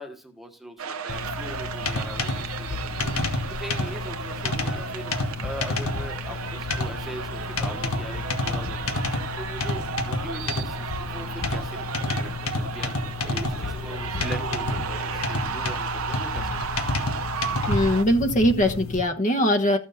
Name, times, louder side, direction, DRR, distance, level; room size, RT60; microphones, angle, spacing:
voice 1, 0.0-9.0 9.3-16.7, right 1 dB, ahead, 4 dB, 1.3 m, -41 dB
sound 1, 0.8-18.0, right 5 dB, 80° right, 0.9 m, -34 dB
sound 2, 1.1-19.0, left 3 dB, 90° left, 1.6 m, -30 dB
voice 2, 17.7-19.8, equal, 35° left, 6 dB, 1.2 m, -21 dB
14.0 x 6.3 x 4.2 m, 0.38 s
head